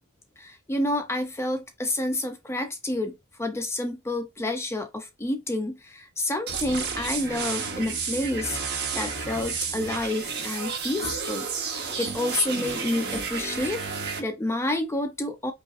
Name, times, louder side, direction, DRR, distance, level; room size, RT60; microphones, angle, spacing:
voice 1, 0.4-15.5, left 1 dB, 10° left, 0.4 m, -29 dB
sound 1, 6.5-14.2, right 5 dB, 50° right, 0.9 m, -31 dB
5.0 x 2.4 x 2.4 m
head